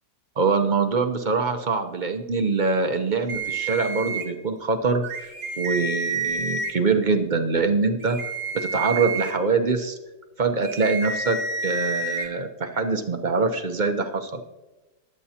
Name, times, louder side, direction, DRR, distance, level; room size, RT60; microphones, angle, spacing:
voice 1, 0.4-8.2 8.5-10.0 10.4-14.4, right 4 dB, 40° right, 6 dB, 0.7 m, -24 dB
sound 1, 3.3-4.2 5.0-6.7 8.0-9.3 10.6-12.3, right 3 dB, 85° right, 2.3 m, -29 dB
22.0 x 8.3 x 2.9 m, 1.1 s
omnidirectional pair, 1.8 m